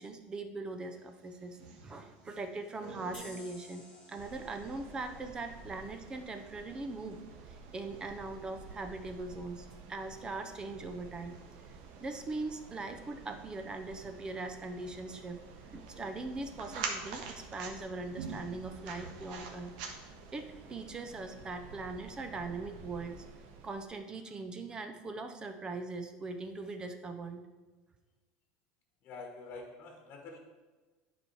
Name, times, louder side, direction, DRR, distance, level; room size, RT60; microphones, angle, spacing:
voice 1, 0.0-3.8 4.1-7.2 7.5-11.4 12.0-15.4 15.6-17.2 17.5-19.7 20.3-23.2 23.6-27.4, right 3 dB, 20° right, 7 dB, 0.6 m, -41 dB
sound 1, 1.0-20.4, right 5 dB, 80° right, 1.4 m, -48 dB
sound 2, 3.1-6.5, left 2 dB, 15° left, 1.7 m, -56 dB
sound 3, 4.2-23.9, right 5 dB, 55° right, 1.1 m, -52 dB
voice 2, 29.0-30.4, left 3 dB, 40° left, 3 dB, 1.2 m, -46 dB
10.5 x 4.8 x 4.6 m, 1.3 s
supercardioid pair, 150°, 4 cm